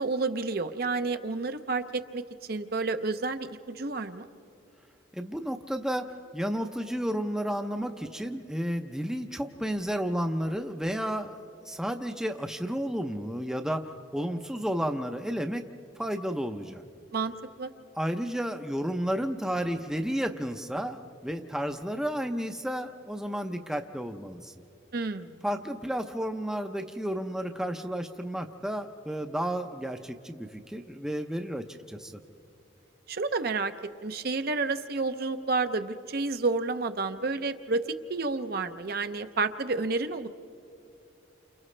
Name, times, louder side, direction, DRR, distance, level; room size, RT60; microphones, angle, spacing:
voice 1, 0.0-2.2 2.5-4.3 17.1-17.3 17.6-17.7 24.9-25.4 33.1-33.7 34.0-37.8 38.1-40.3, right 3 dB, 50° right, 9 dB, 0.6 m, -30 dB
voice 2, 5.1-6.1 6.3-11.3 11.7-13.8 14.1-15.6 16.0-16.8 18.0-24.5 25.4-32.2, equal, 5° right, 5 dB, 0.6 m, -32 dB
29.5 x 28.5 x 3.3 m, 2.5 s
head